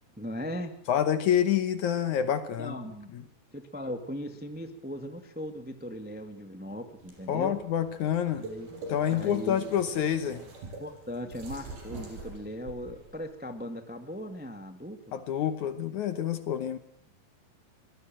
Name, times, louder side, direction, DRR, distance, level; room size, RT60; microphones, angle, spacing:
voice 1, 0.2-0.7 2.6-3.1 3.5-7.5 8.3-8.7 9.1-9.6 10.8-15.0, equal, 10° right, 7 dB, 0.5 m, -38 dB
voice 2, 0.9-2.8 3.1-3.2 7.3-8.5 8.9-10.4 15.1-16.8, left 9 dB, 65° left, 12 dB, 2.1 m, -27 dB
sound 1, 7.0-13.2, right 2 dB, 80° right, 7.1 m, -44 dB
25.0 x 19.0 x 7.6 m, 0.66 s
omnidirectional pair, 4.4 m